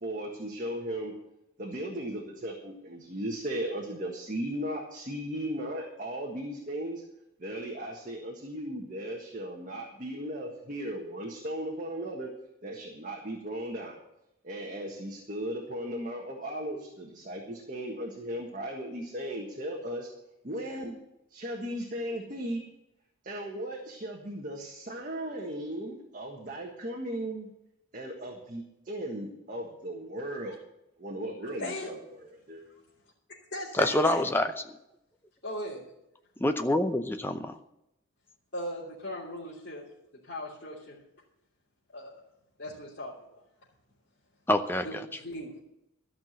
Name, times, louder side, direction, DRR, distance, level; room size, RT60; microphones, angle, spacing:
voice 1, 0.0-1.1 1.6-7.0 7.4-12.3 12.6-14.0 14.4-20.1 20.4-21.0 21.3-22.6 23.2-27.5 27.9-30.6 31.0-31.9 32.5-32.7, right 1 dB, 40° right, -1 dB, 1.6 m, -36 dB
voice 2, 31.6-32.0 33.5-34.2 35.4-35.9 38.5-39.8 40.2-41.0 41.9-42.2 42.6-43.4 44.8-45.6, left 1 dB, 50° left, -9 dB, 3.3 m, -38 dB
voice 3, 33.8-34.5 36.4-37.5 44.5-44.8, left 1 dB, 10° left, 7 dB, 0.6 m, -26 dB
13.5 x 6.0 x 9.3 m, 0.85 s
head